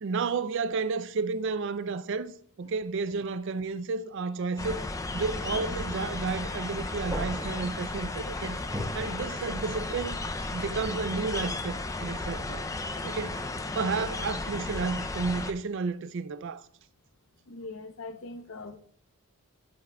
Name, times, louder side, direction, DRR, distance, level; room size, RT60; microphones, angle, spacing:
voice 1, 0.0-2.3 2.6-4.8 5.1-8.6 8.9-10.2 10.5-12.7 13.0-13.5 13.7-16.6, right 4 dB, 55° right, 0.4 m, -32 dB
sound 1, 4.5-10.0, equal, 15° right, 1.4 m, -43 dB
sound 2, 4.6-15.5, left 2 dB, 15° left, 0.3 m, -34 dB
voice 2, 17.4-18.8, left 3 dB, 60° left, 0.7 m, -41 dB
11.5 x 8.3 x 2.2 m
head